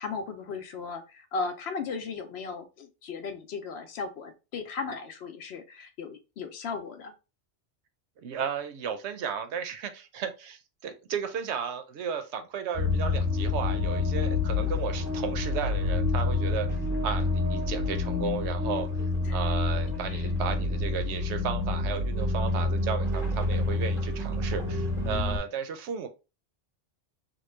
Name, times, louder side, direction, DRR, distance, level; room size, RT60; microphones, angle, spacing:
voice 1, 0.0-7.1 19.2-19.4 20.1-20.3, left 4 dB, 70° left, 7 dB, 0.8 m, -36 dB
voice 2, 8.2-16.7 17.0-18.9 19.3-26.1, right 7 dB, 70° right, 8 dB, 0.8 m, -34 dB
sound 1, 12.7-25.4, left 3 dB, 5° right, 0.9 m, -28 dB
3.0 x 2.3 x 3.1 m, 0.29 s
omnidirectional pair, 1.2 m